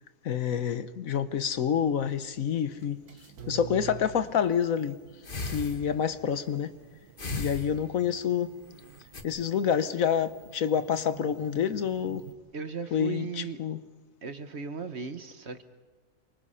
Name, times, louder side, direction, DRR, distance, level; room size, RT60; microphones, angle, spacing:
voice 1, 0.2-3.0 3.5-5.0 5.5-6.7 7.4-8.5 9.2-12.2 12.9-13.8, left 8 dB, 65° left, 1.3 m, -28 dB
sound 1, 1.7-12.3, right 7 dB, 80° right, 2.1 m, -49 dB
sound 2, 4.0-4.3 5.2-6.2 7.2-8.2 8.8-9.2, left 2 dB, 35° left, 1.7 m, -37 dB
voice 2, 12.5-13.6 14.2-15.6, right 5 dB, 50° right, 1.3 m, -37 dB
28.5 x 24.5 x 5.7 m
omnidirectional pair, 1.6 m